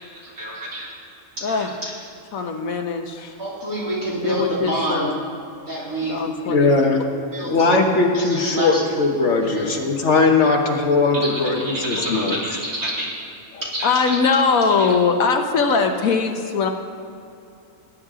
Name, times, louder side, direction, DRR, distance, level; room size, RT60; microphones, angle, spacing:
voice 1, 0.1-0.9 1.4-1.9 3.4-5.1 5.7-6.2 7.3-7.6 8.2-9.0 9.5-9.7 11.2-13.1 13.6-14.2 14.5-14.9 16.0-16.1, right 1 dB, 70° right, -6 dB, 3.6 m, -28 dB
voice 2, 1.4-1.7 2.3-3.4 4.2-5.1 6.0-6.7 7.5-7.8 13.8-16.7, left 5 dB, 75° left, 5 dB, 1.3 m, -21 dB
voice 3, 6.5-7.0 7.5-12.4, left 3 dB, 55° left, 2 dB, 1.4 m, -19 dB
17.5 x 9.7 x 3.7 m, 2.6 s
omnidirectional pair, 1.5 m